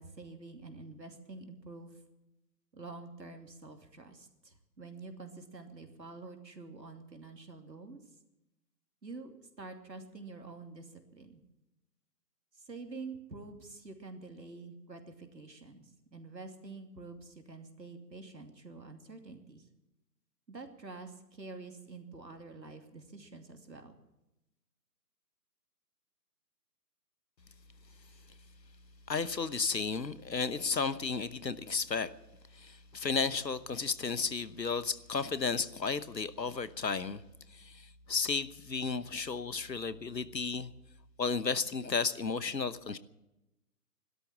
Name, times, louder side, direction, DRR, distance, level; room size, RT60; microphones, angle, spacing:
voice 1, 0.0-2.0 2.7-8.0 9.0-9.3 9.6-11.4 12.5-19.7 20.5-23.9, right 3 dB, 85° right, 5 dB, 2.8 m, -47 dB
voice 2, 29.1-32.1 32.5-37.2 37.5-40.7 41.2-43.0, left 5 dB, 85° left, 15 dB, 1.1 m, -33 dB
16.0 x 12.5 x 7.3 m, 0.91 s
figure-of-eight pair, 150°, 49 cm